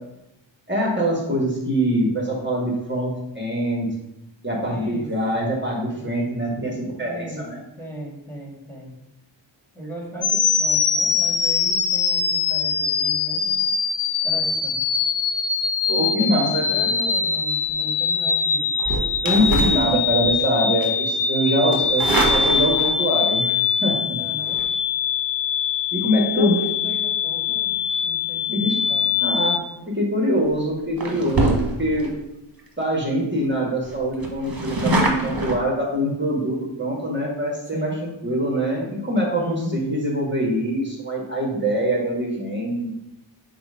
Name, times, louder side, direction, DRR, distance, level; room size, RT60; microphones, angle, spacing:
voice 1, 0.7-3.9 4.4-7.6 15.9-16.9 19.2-24.2 25.9-26.6 28.5-28.8 29.2-29.6 29.9-32.1 32.8-37.9 38.2-42.9, equal, 25° right, -3 dB, 1.8 m, -24 dB
voice 2, 4.6-5.1 5.8-6.1 7.0-7.4 7.8-8.9 9.7-13.6 14.2-14.7 16.0-18.7 24.2-24.6 26.3-27.7 28.0-29.1 37.7-38.0 39.4-39.7, right 1 dB, 5° left, -2 dB, 2.3 m, -35 dB
sound 1, 10.2-29.6, left 6 dB, 45° left, 0.7 m, -23 dB
sound 2, 18.8-20.4 20.8-21.1 21.7-23.1 24.4-24.6 29.7-29.9 30.4-30.6 31.0-32.1 32.6-32.7 32.9-33.0 33.4-33.5 33.8-35.6, right 2 dB, 50° right, 1.5 m, -24 dB
7.4 x 2.6 x 5.7 m, 0.86 s
wide cardioid pair, 65°, 46 cm